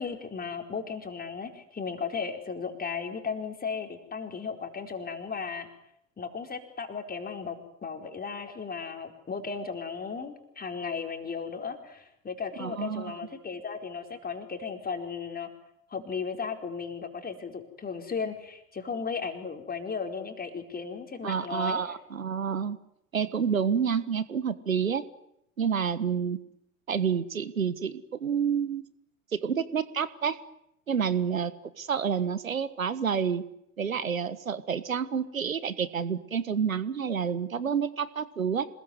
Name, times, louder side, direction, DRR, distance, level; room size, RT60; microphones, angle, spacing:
voice 1, 0.0-5.7 6.2-7.6 7.8-15.5 15.9-21.8, left 5 dB, 20° left, 5 dB, 4.6 m, -35 dB
voice 2, 12.6-13.2 21.2-22.8 23.1-25.0 25.6-26.4 26.9-28.8 29.3-30.4 30.9-31.5 31.8-33.4 33.8-38.7, right 7 dB, 85° right, 16 dB, 1.4 m, -29 dB
26.5 x 21.0 x 9.5 m, 0.79 s
figure-of-eight pair, 75°, 40 cm